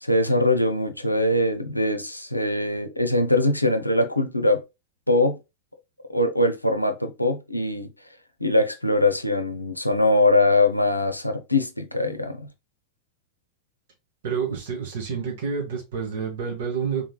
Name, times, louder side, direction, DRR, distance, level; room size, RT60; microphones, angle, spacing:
voice 1, 0.0-4.6 5.1-5.4 6.1-7.9 8.4-12.5, left 2 dB, 85° left, 0.5 m, -22 dB
voice 2, 14.2-17.1, right 6 dB, 55° right, 1.5 m, -28 dB
3.6 x 3.2 x 2.3 m
figure-of-eight pair, 90°, 0 cm